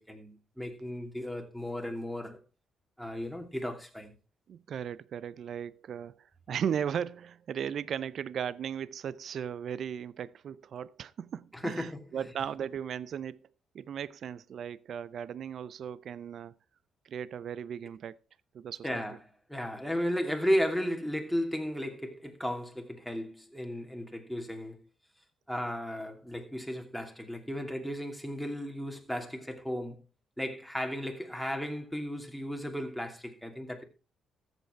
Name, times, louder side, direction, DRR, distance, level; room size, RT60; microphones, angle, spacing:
voice 1, 0.1-2.4 3.0-4.1 11.5-12.0 18.8-19.2 19.5-24.8 25.5-30.0 30.4-33.8, equal, ahead, 2.8 m, -34 dB
voice 2, 4.5-13.4 13.7-16.5 17.0-18.2 18.5-19.0, right 8 dB, 60° right, 0.5 m, -37 dB
14.0 x 8.2 x 4.5 m
cardioid pair, 90°, 0 cm